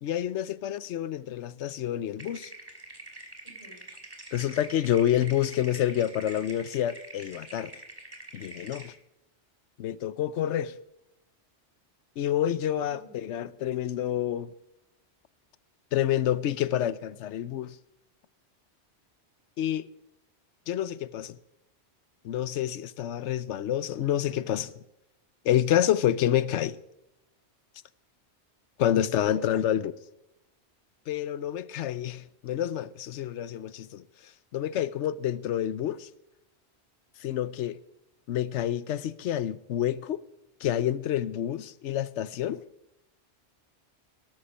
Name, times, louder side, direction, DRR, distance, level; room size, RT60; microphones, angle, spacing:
voice 1, 0.0-2.5 4.3-7.7 8.3-8.9 9.8-10.7 12.2-14.5 15.9-17.8 19.6-19.9 20.7-21.4 22.2-24.8 25.4-26.8 28.8-29.9 31.1-34.0 34.5-36.1 37.2-37.8 38.3-40.2 40.6-42.6, left 11 dB, 85° left, 1.0 m, -28 dB
sound 1, 2.2-8.9, right 2 dB, 20° right, 2.5 m, -45 dB
voice 2, 3.4-3.8 12.9-13.2, left 1 dB, 60° left, 6.6 m, -47 dB
13.0 x 12.5 x 5.1 m
omnidirectional pair, 1.2 m